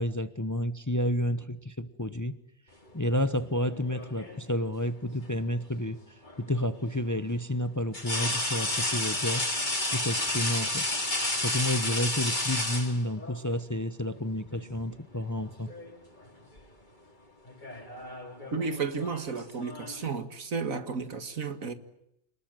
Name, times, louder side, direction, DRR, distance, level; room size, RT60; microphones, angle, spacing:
voice 1, 0.0-2.4 2.9-6.0 6.4-9.5 9.9-10.9 11.4-15.7, left 1 dB, 15° left, 0.8 m, -30 dB
sound 1, 3.6-4.5 6.2-6.4 7.9-13.4 14.6-14.8 15.2-16.0 16.2-16.6 17.5-20.1, left 2 dB, 35° left, 3.5 m, -32 dB
voice 2, 18.5-21.7, right 5 dB, 80° right, 2.3 m, -33 dB
28.0 x 20.5 x 9.2 m
omnidirectional pair, 1.4 m